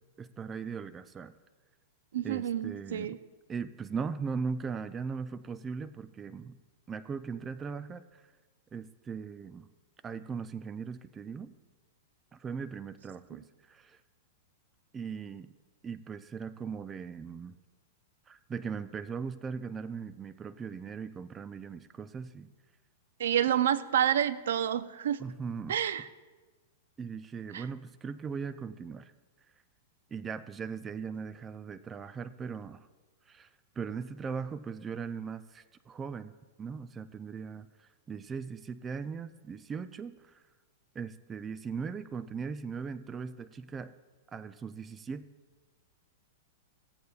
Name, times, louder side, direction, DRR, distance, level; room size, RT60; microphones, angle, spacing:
voice 1, 0.2-1.3 2.2-3.1 3.5-6.6 6.9-8.3 8.7-9.7 10.0-11.5 12.3-14.0 14.9-15.5 15.8-17.6 18.3-22.5 25.2-25.8 27.0-29.1 30.1-32.9 33.3-33.5 33.8-36.3 36.6-40.4 40.9-43.9 44.3-45.2, right 5 dB, 15° right, 11 dB, 0.3 m, -39 dB
voice 2, 2.1-3.2 23.2-25.2 25.7-26.1 27.5-27.7, right 10 dB, 80° right, 14 dB, 0.5 m, -28 dB
16.5 x 8.3 x 2.4 m, 1.3 s
hypercardioid pair, 150°, 0 cm